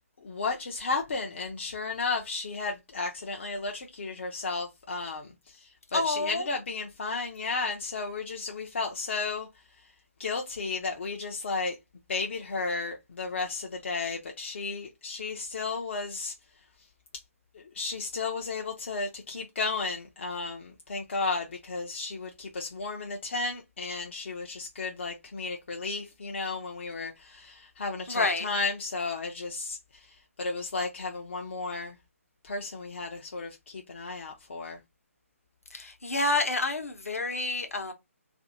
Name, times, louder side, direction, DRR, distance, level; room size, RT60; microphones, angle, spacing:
voice 1, 0.2-9.5 10.2-11.8 12.1-16.3 17.5-32.0 32.4-34.8, left 4 dB, 50° left, 0.5 m, -33 dB
voice 2, 5.9-6.4 28.1-28.5 35.7-37.9, left 2 dB, 70° left, 0.9 m, -28 dB
2.7 x 2.6 x 3.9 m
figure-of-eight pair, 140°, 8 cm